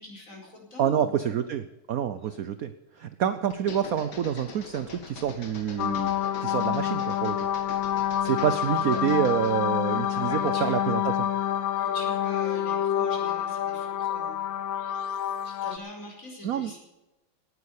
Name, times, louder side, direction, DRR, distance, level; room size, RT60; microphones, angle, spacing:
voice 1, 0.0-1.3 2.2-2.3 10.1-10.8 11.8-14.4 15.4-16.8, left 1 dB, 40° left, 0 dB, 5.3 m, -43 dB
voice 2, 0.8-7.4 8.2-11.3 16.4-16.7, right 9 dB, 60° right, 12 dB, 0.9 m, -28 dB
sound 1, 3.5-9.6, left 4 dB, 60° left, 2.4 m, -44 dB
sound 2, 5.8-15.8, left 10 dB, 80° left, 1.4 m, -27 dB
18.0 x 9.8 x 6.6 m, 1.0 s
omnidirectional pair, 2.1 m